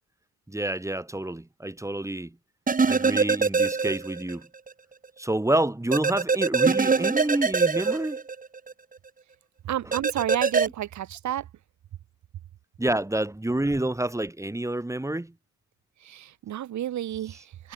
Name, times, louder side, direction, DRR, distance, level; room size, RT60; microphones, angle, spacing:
voice 1, 0.5-2.3 2.8-4.5 5.2-8.2 12.8-15.3, right 1 dB, 10° right, 3.2 m, -28 dB
sound 1, 2.7-4.4 4.7-4.8 5.9-8.7 9.9-10.7, right 4 dB, 25° right, 1.8 m, -23 dB
voice 2, 9.6-11.5 16.0-17.7, right 12 dB, 70° right, 2.0 m, -31 dB
cardioid pair, 90°, 30 cm